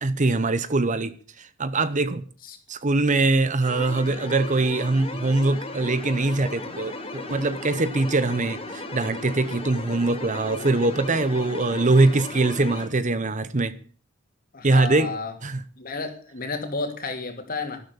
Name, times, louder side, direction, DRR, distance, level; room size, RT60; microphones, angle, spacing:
voice 1, 0.0-2.2 2.7-13.7 14.6-15.1 15.4-15.6, right 2 dB, 40° right, 0.9 m, -23 dB
sound 1, 3.6-12.9, left 2 dB, 30° left, 3.6 m, -36 dB
voice 2, 14.5-15.3 15.8-17.8, left 3 dB, 45° left, 2.9 m, -31 dB
12.5 x 12.0 x 7.1 m
head